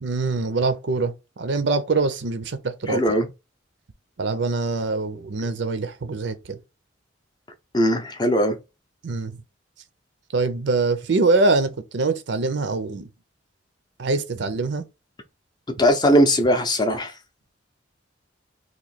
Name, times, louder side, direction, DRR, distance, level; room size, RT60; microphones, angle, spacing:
voice 1, 0.0-3.1 4.2-6.6 9.0-9.3 10.3-13.1 14.0-14.8, right 3 dB, 65° right, 0.5 m, -24 dB
voice 2, 2.9-3.3 7.7-8.6 15.8-17.1, equal, 20° left, 0.5 m, -19 dB
3.0 x 2.6 x 4.1 m
head